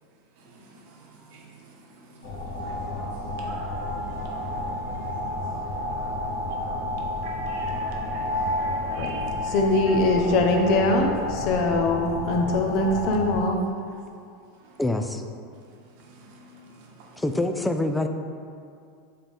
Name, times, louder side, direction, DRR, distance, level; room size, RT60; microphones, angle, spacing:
voice 1, 0.4-9.6 9.9-10.4 14.6-14.8 16.0-17.2, right 2 dB, 70° right, -2 dB, 1.3 m, -45 dB
sound 1, 2.2-13.4, left 1 dB, 80° left, 1.1 m, -30 dB
voice 2, 9.4-13.7, left 2 dB, 55° left, 3 dB, 0.8 m, -22 dB
voice 3, 14.8-15.2 17.2-18.1, left 2 dB, 5° left, 6 dB, 0.4 m, -25 dB
8.5 x 3.7 x 3.5 m, 2.3 s
supercardioid pair, 125°, 0 cm